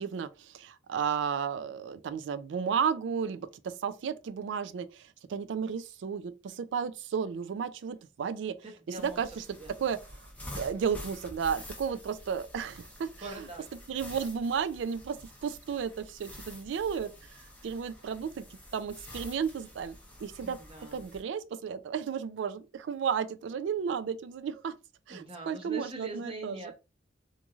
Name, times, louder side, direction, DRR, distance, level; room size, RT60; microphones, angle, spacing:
voice 1, 0.0-8.6 9.0-9.4 9.8-10.0 10.6-13.5 13.9-17.1 17.6-18.4 18.7-20.6 20.9-24.7 25.1-26.7, right 7 dB, 75° right, 0.3 m, -33 dB
voice 2, 8.6-9.2 9.6-9.7 13.2-13.6 20.4-21.0 25.1-26.7, right 2 dB, 30° right, 0.8 m, -42 dB
sound 1, 9.0-21.2, left 1 dB, 5° left, 0.6 m, -48 dB
3.0 x 2.6 x 2.3 m
head